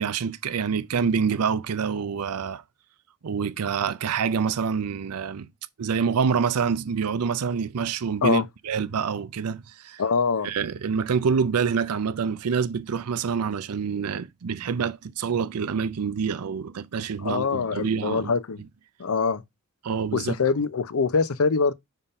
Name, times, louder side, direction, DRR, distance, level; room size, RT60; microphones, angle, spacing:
voice 1, 0.0-2.6 3.2-5.5 5.8-10.0 10.4-18.3 19.8-20.4, right 6 dB, 90° right, 0.5 m, -26 dB
voice 2, 10.0-10.5 17.2-18.6 19.0-19.4 20.1-21.7, left 5 dB, 70° left, 0.6 m, -24 dB
5.6 x 3.6 x 5.2 m
head